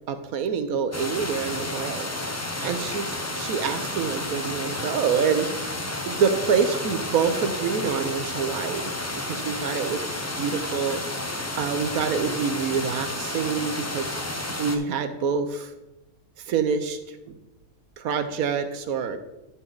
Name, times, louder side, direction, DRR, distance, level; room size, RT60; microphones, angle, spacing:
voice 1, 0.1-2.1 2.6-5.8 6.1-8.9 9.2-10.0 10.4-11.0 11.6-14.2 14.6-15.7 16.5-17.0 17.3-17.4 18.0-19.2, right 6 dB, 75° right, 9 dB, 1.2 m, -26 dB
sound 1, 0.9-14.8, left 1 dB, 20° left, 0.4 m, -31 dB
12.5 x 5.4 x 3.9 m, 0.95 s
omnidirectional pair, 1.6 m